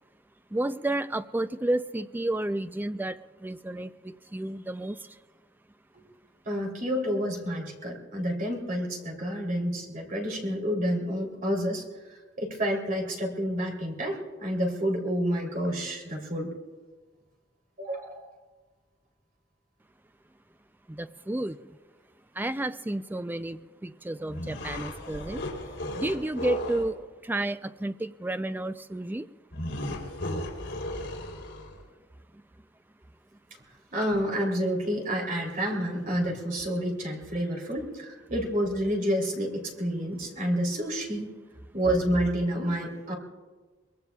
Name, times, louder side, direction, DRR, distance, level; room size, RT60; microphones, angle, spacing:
voice 1, 0.5-5.0 20.9-21.6 22.4-25.4 26.0-27.0 27.2-29.3, right 1 dB, 10° right, 12 dB, 0.4 m, -31 dB
voice 2, 6.4-11.8 12.4-16.5 17.8-18.3 33.9-41.3 41.7-43.1, equal, 45° right, 1 dB, 3.1 m, -29 dB
sound 1, 24.3-26.9 29.5-31.8, left 1 dB, 75° left, 3.4 m, -35 dB
23.5 x 21.5 x 2.3 m, 1.4 s
head